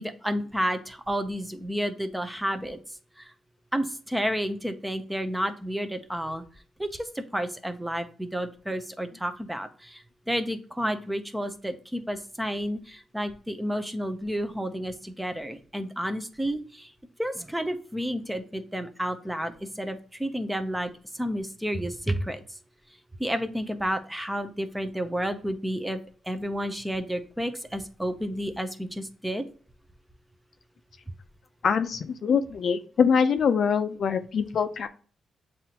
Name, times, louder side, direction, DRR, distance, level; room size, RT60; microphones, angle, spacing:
voice 1, 0.0-2.8 3.2-3.3 3.7-6.4 6.8-16.9 17.2-22.4 23.2-26.0 26.2-29.4, equal, 5° right, 8 dB, 0.5 m, -31 dB
voice 2, 31.6-34.9, left 6 dB, 55° left, 10 dB, 0.4 m, -24 dB
7.4 x 2.5 x 2.7 m, 0.43 s
cardioid pair, 115°, 0 cm